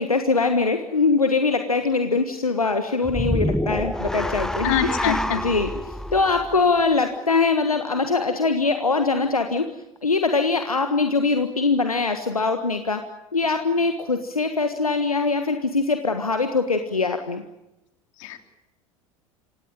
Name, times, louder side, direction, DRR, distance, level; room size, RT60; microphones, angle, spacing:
voice 1, 0.0-5.7 6.1-9.7 10.0-13.0 13.3-17.4, left 4 dB, 90° left, 7 dB, 1.5 m, -22 dB
sound 1, 3.0-7.4, left 1 dB, 5° left, 1.0 m, -28 dB
voice 2, 4.6-5.4 18.2-18.4, left 10 dB, 60° left, 7 dB, 3.3 m, -25 dB
26.5 x 18.0 x 9.0 m, 0.94 s
figure-of-eight pair, 75°, 18 cm